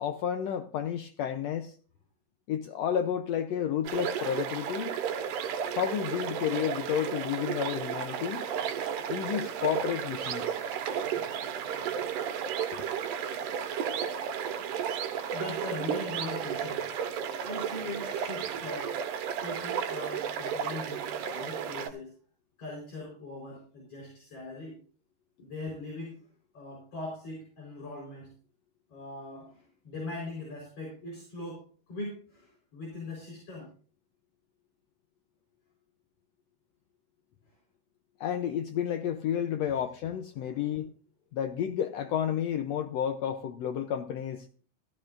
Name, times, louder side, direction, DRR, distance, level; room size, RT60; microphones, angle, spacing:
voice 1, 0.0-1.8 2.5-5.0 5.7-8.5 9.1-10.6 12.7-12.8 38.2-40.9 41.3-44.5, left 9 dB, 85° left, 1.4 m, -31 dB
sound 1, 3.8-21.9, right 8 dB, 75° right, 2.6 m, -33 dB
voice 2, 15.3-16.9 17.4-19.0 19.4-22.1 22.6-24.8 25.4-26.2 26.5-28.3 28.9-33.7 40.4-40.6, left 2 dB, 45° left, 5.3 m, -41 dB
15.0 x 14.0 x 2.5 m
omnidirectional pair, 3.9 m